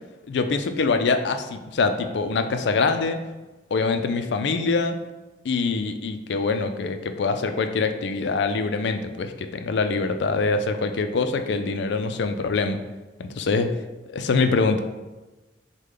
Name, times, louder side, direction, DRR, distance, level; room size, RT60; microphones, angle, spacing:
voice 1, 0.3-3.2 3.7-4.9 5.4-12.8 13.2-13.7 14.1-14.8, left 4 dB, 70° left, 8 dB, 0.4 m, -24 dB
6.4 x 2.2 x 3.8 m, 1.1 s
head